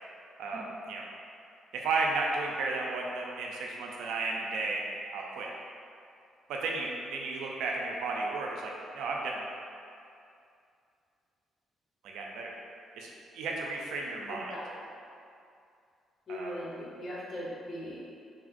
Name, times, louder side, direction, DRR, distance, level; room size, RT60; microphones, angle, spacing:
voice 1, 0.4-1.0 1.7-4.8 5.1-5.5 6.5-9.5 12.0-12.5 12.9-14.5 16.3-16.5, right 3 dB, 85° right, -1 dB, 0.4 m, -33 dB
voice 2, 14.3-14.6 16.3-18.1, equal, 50° left, -7 dB, 0.9 m, -39 dB
3.3 x 2.4 x 2.5 m, 2.4 s
cardioid pair, 90°, 0 cm